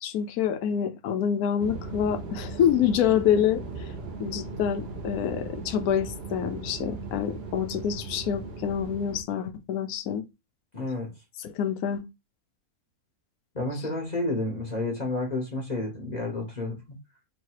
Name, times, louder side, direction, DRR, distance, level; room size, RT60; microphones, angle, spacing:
voice 1, 0.0-3.6 4.2-10.2 11.4-12.0, left 9 dB, 85° left, 1.1 m, -26 dB
sound 1, 1.6-9.2, right 3 dB, 50° right, 0.9 m, -38 dB
voice 2, 10.7-11.1 13.5-16.8, left 2 dB, 30° left, 1.0 m, -30 dB
3.2 x 3.0 x 4.6 m
omnidirectional pair, 1.5 m